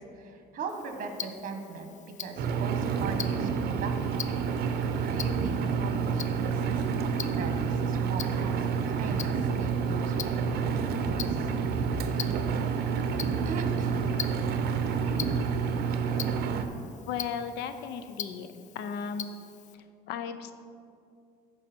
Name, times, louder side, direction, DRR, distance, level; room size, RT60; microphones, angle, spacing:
voice 1, 0.0-1.9 2.2-4.2 5.1-11.5 11.8-12.2 13.4-14.1, right 4 dB, 50° right, 5 dB, 1.3 m, -39 dB
Tick-tock, 0.7-19.7, left 8 dB, 45° left, 0.5 m, -44 dB
Engine, 2.4-16.7, right 6 dB, 70° right, 0.7 m, -29 dB
voice 2, 17.1-18.5 18.7-19.3 20.1-20.5, left 7 dB, 85° left, 10 dB, 0.6 m, -35 dB
13.5 x 4.8 x 4.4 m, 2.5 s
cardioid pair, 110°, 17 cm